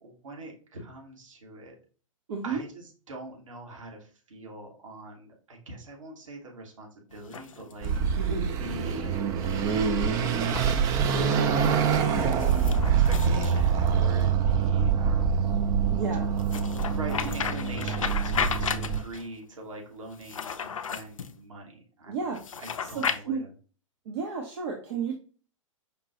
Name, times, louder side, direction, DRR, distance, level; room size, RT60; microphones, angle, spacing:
voice 1, 0.0-1.7 2.4-9.2 11.1-15.4 16.8-23.5, right 2 dB, 70° right, 0 dB, 1.4 m, -42 dB
voice 2, 2.3-2.6 8.2-8.5 15.9-16.3 22.1-22.4 22.9-23.4 24.1-25.1, right 5 dB, 55° right, 2 dB, 0.7 m, -32 dB
sound 1, 7.1-8.1 10.3-10.7 12.3-14.3 16.4-19.3 20.1-21.3 22.3-23.2, left 6 dB, 75° left, 0.4 m, -34 dB
Car passing by / Accelerating revving vroom, 7.8-19.0, right 6 dB, 20° right, 0.3 m, -25 dB
5.1 x 2.2 x 2.9 m, 0.39 s
figure-of-eight pair, 110°, 17 cm